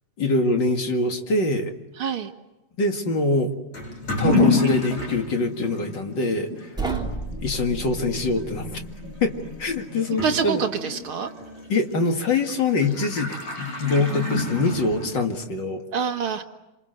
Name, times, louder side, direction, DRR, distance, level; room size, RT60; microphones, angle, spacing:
voice 1, 0.2-1.7 2.8-3.5 4.2-6.7 7.4-8.8 9.2-9.3 9.6-10.6 11.7-15.8, left 3 dB, 40° left, 5 dB, 2.3 m, -24 dB
voice 2, 2.0-2.3 6.8-7.1 10.2-11.3 15.9-16.4, right 6 dB, 50° right, 5 dB, 1.9 m, -26 dB
Toilet flush / Liquid, 3.7-15.4, left 3 dB, 55° left, 9.1 m, -29 dB
sound 1, 6.7-9.8, right 3 dB, ahead, 2.5 m, -34 dB
28.0 x 27.0 x 7.9 m, 1.0 s
omnidirectional pair, 3.8 m